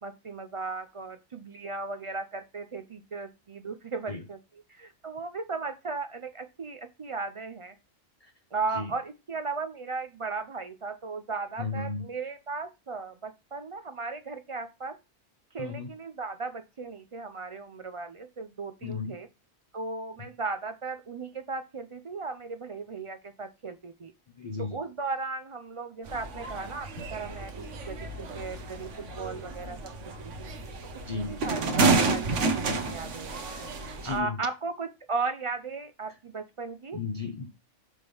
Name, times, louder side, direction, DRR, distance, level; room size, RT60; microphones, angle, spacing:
voice 1, 0.0-4.4 4.7-7.8 8.5-15.0 15.5-19.3 19.7-24.1 24.6-30.5 31.2-33.4 34.1-37.0, right 4 dB, 60° right, 9 dB, 0.3 m, -36 dB
voice 2, 11.6-12.1 15.6-15.9 18.8-19.1 24.4-24.8 31.0-31.3 33.5-33.7 34.0-34.4 36.9-37.5, left 4 dB, 35° left, 5 dB, 0.7 m, -34 dB
sound 1, 26.1-34.2, right 3 dB, 75° right, 1.3 m, -30 dB
6.4 x 3.5 x 5.3 m, 0.25 s
omnidirectional pair, 1.3 m